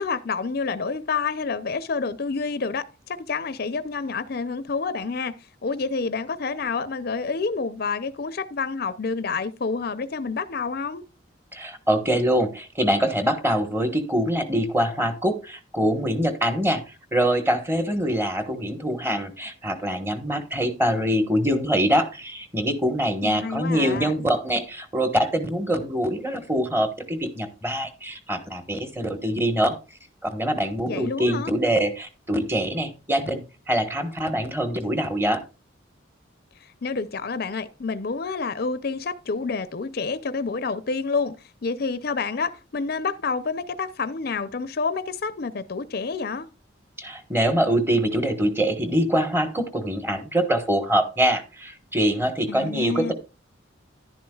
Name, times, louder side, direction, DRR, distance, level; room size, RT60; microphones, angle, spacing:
voice 1, 0.0-5.3 5.6-11.0 23.2-24.1 30.8-31.5 36.6-41.3 41.6-46.5 52.5-53.1, left 4 dB, 50° left, 0.5 m, -28 dB
voice 2, 11.5-29.8 30.3-35.4 47.0-53.1, equal, 10° right, 1.2 m, -24 dB
11.0 x 10.5 x 2.3 m
head